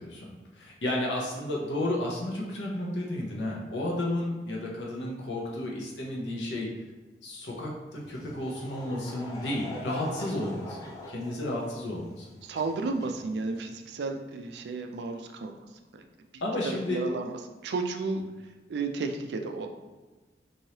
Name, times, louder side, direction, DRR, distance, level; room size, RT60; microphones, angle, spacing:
voice 1, 0.0-6.7 7.2-12.3 16.4-17.0, left 1 dB, 90° left, -2 dB, 0.8 m, -32 dB
Laughter / Crowd, 8.0-13.7, left 1 dB, 20° left, 0.4 m, -43 dB
voice 2, 12.4-15.6 15.9-16.0 16.3-17.3 17.6-18.2 18.7-19.7, right 3 dB, 70° right, 5 dB, 0.3 m, -33 dB
3.1 x 2.7 x 2.8 m, 1.2 s
head